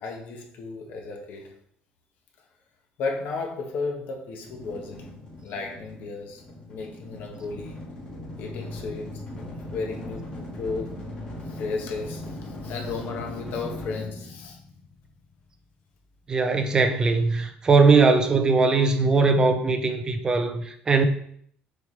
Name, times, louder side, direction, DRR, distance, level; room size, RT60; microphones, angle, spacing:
voice 1, 0.0-1.5 3.0-5.1 5.4-6.4 6.7-7.8 8.4-9.5 9.7-11.0 11.4-14.6, left 4 dB, 60° left, 2 dB, 1.4 m, -34 dB
sound 1, 4.4-15.4, left 1 dB, 25° left, 2.5 m, -39 dB
voice 2, 16.3-21.1, right 4 dB, 20° right, 7 dB, 0.6 m, -20 dB
6.8 x 4.7 x 3.4 m, 0.64 s
cardioid pair, 165°, 4 cm